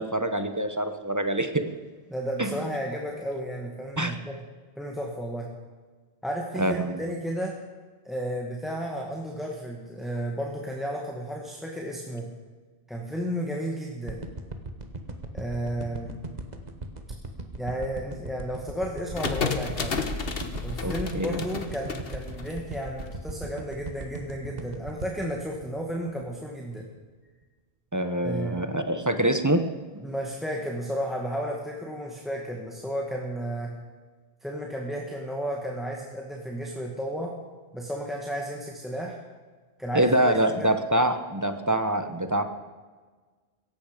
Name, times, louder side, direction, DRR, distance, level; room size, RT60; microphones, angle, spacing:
voice 1, 0.0-1.6 2.4-2.7 4.0-4.1 6.6-7.0 20.8-21.4 27.9-29.6 39.9-42.4, right 1 dB, 20° right, 8 dB, 1.1 m, -25 dB
voice 2, 2.1-4.4 4.8-5.5 6.2-7.6 8.0-12.3 12.9-14.2 15.3-16.1 17.6-20.0 20.6-26.9 28.2-28.6 30.0-33.7 34.4-37.3 37.7-39.2 39.8-40.7, equal, ahead, 0 dB, 1.8 m, -33 dB
sound 1, 14.1-26.4 26.8-26.9, right 2 dB, 40° right, 1.5 m, -38 dB
sound 2, 19.1-23.0, left 5 dB, 65° left, 1.5 m, -32 dB
17.0 x 15.0 x 5.2 m, 1.4 s
omnidirectional pair, 1.1 m